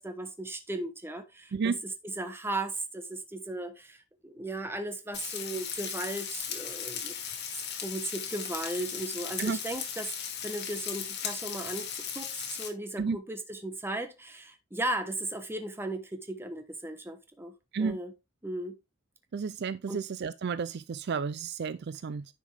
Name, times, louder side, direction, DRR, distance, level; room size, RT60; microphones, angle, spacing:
voice 1, 0.0-7.4 7.8-11.9 12.1-17.5 17.8-18.1 18.4-18.8 19.9-20.0, right 1 dB, 10° right, 1.1 m, -36 dB
Frying (food), 5.1-12.7, left 8 dB, 55° left, 1.8 m, -37 dB
voice 2, 19.3-22.3, right 5 dB, 55° right, 0.4 m, -32 dB
10.0 x 5.2 x 3.4 m
head